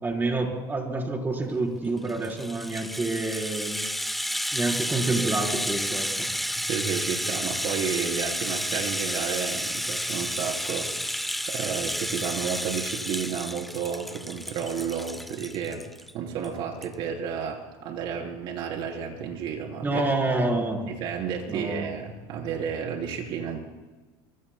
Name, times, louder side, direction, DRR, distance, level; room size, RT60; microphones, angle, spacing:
voice 1, 0.0-3.9 4.5-6.3 19.8-20.8 21.5-21.8, right 2 dB, 20° right, 1 dB, 3.9 m, -28 dB
Rattle (instrument), 2.0-16.1 16.4-16.5 16.8-16.9, equal, ahead, 0.6 m, -31 dB
voice 2, 6.6-15.9 16.1-20.1 20.9-23.6, right 7 dB, 60° right, 0 dB, 3.8 m, -32 dB
25.0 x 23.5 x 2.2 m, 1.2 s
supercardioid pair, 110°, 10 cm